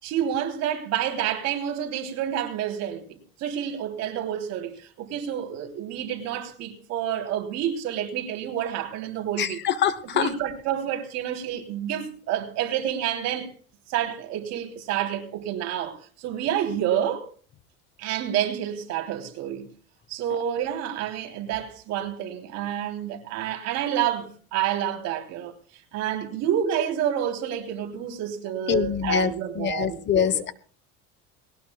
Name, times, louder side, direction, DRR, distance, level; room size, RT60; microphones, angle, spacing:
voice 1, 0.0-9.7 10.1-13.5 13.9-17.3 18.0-19.7 20.1-25.5 25.9-30.4, right 10 dB, 60° right, 3.4 m, -29 dB
voice 2, 9.4-10.3 28.7-30.5, left 8 dB, 40° left, 1.0 m, -24 dB
20.0 x 18.5 x 2.3 m
cardioid pair, 135°, 29 cm